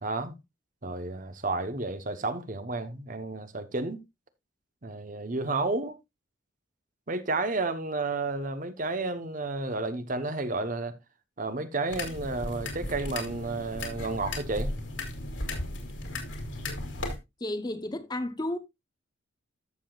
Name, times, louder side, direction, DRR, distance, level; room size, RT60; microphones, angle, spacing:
voice 1, 0.0-0.3 0.8-4.0 4.8-5.9 7.1-10.9 11.4-14.7, right 3 dB, 40° right, 1.0 m, -31 dB
sound 1, 11.9-17.2, left 2 dB, 75° left, 2.9 m, -35 dB
voice 2, 17.4-18.6, left 1 dB, 20° left, 0.8 m, -32 dB
13.5 x 7.0 x 2.4 m
head